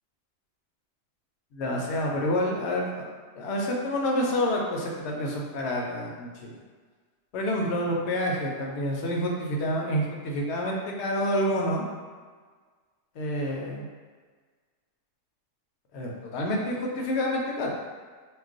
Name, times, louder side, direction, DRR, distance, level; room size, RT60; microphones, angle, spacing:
voice 1, 1.5-2.9 3.4-6.5 7.3-11.8 13.2-13.9 15.9-17.7, equal, 65° left, -1 dB, 0.8 m, -28 dB
2.3 x 2.2 x 3.7 m, 1.5 s
omnidirectional pair, 1.3 m